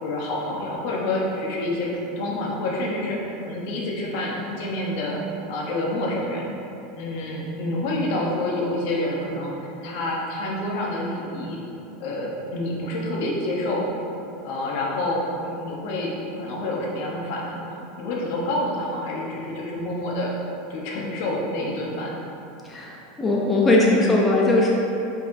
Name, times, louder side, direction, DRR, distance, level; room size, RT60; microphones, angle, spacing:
voice 1, 0.0-5.2 5.5-6.5 7.0-11.6 12.0-13.9 14.4-20.3 20.7-22.1, left 1 dB, 65° left, -2 dB, 0.9 m, -28 dB
voice 2, 22.6-24.7, left 2 dB, 20° left, -3 dB, 0.6 m, -19 dB
4.9 x 4.1 x 2.6 m, 2.8 s
hypercardioid pair, 105°, 0 cm